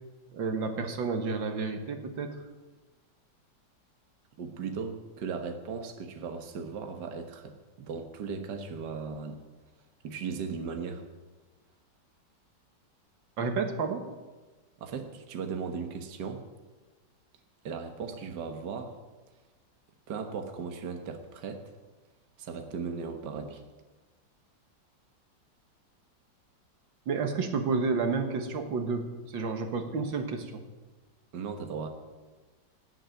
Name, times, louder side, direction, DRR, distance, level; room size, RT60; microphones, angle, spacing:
voice 1, 0.3-2.4 13.4-14.1 27.1-30.6, right 4 dB, 80° right, 6 dB, 2.2 m, -30 dB
voice 2, 4.4-9.4 10.0-11.0 14.8-16.4 17.6-19.0 20.1-21.7 22.4-23.6 31.3-31.9, right 5 dB, 65° right, 5 dB, 1.8 m, -37 dB
18.0 x 7.9 x 9.2 m, 1.2 s
omnidirectional pair, 2.1 m